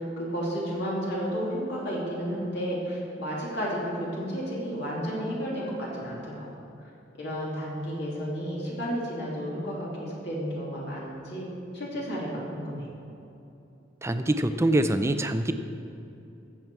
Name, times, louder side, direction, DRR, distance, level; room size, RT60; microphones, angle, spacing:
voice 1, 0.0-6.5 7.2-11.4 11.7-12.9, equal, 60° left, -5 dB, 2.5 m, -32 dB
voice 2, 14.0-15.5, right 1 dB, 15° right, 9 dB, 0.4 m, -24 dB
15.0 x 7.1 x 4.7 m, 2.8 s
head